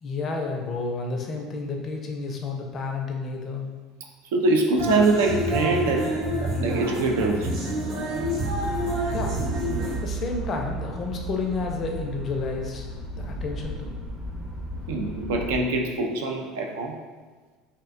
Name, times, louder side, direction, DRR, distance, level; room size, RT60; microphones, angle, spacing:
voice 1, 0.0-3.7 9.1-9.4 10.0-12.9 13.2-13.9, left 4 dB, 45° left, 2 dB, 0.4 m, -31 dB
voice 2, 4.3-6.1 6.4-7.5 14.9-16.9, right 3 dB, 80° right, 2 dB, 0.3 m, -24 dB
sound 1, 4.8-10.0, equal, 65° right, 0.8 m, -28 dB
sound 2, 8.4-15.6, right 3 dB, 25° right, 0.5 m, -34 dB
2.5 x 2.1 x 2.5 m, 1.4 s
hypercardioid pair, 80°, 0 cm